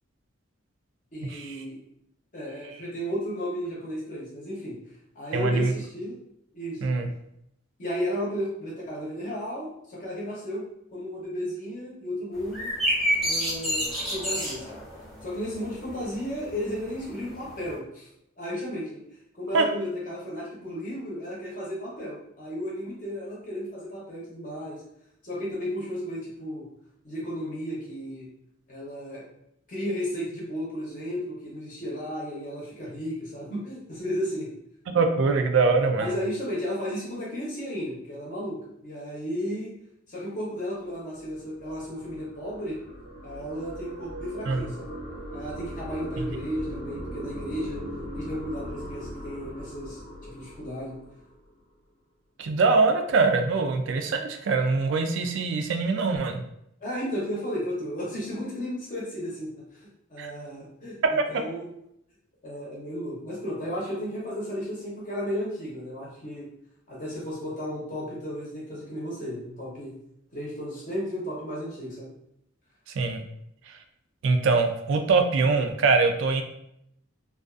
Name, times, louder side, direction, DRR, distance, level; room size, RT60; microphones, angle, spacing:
voice 1, 1.1-1.8 2.3-4.8 5.1-6.1 6.5-6.8 7.8-10.7 10.9-12.7 13.2-14.8 15.2-18.1 18.4-19.0 19.3-24.8 25.2-26.6 27.0-28.3 28.7-29.2 29.7-34.5 36.0-39.7 40.1-42.8 43.2-44.9 45.3-47.8 48.1-51.0 56.8-61.7 62.4-66.5 66.9-69.9 70.3-72.1, equal, 40° left, -6 dB, 0.7 m, -34 dB
voice 2, 5.3-5.7 6.8-7.1 19.5-19.7 34.9-36.1 44.5-44.6 52.4-56.4 60.2-60.3 61.0-61.4 73.0-73.2 74.2-76.4, right 4 dB, 65° right, 6 dB, 0.3 m, -23 dB
sound 1, 12.3-17.7, equal, ahead, 0.6 m, -30 dB
sound 2, 40.9-51.5, equal, 85° left, 0.9 m, -39 dB
2.4 x 2.3 x 2.3 m, 0.77 s
head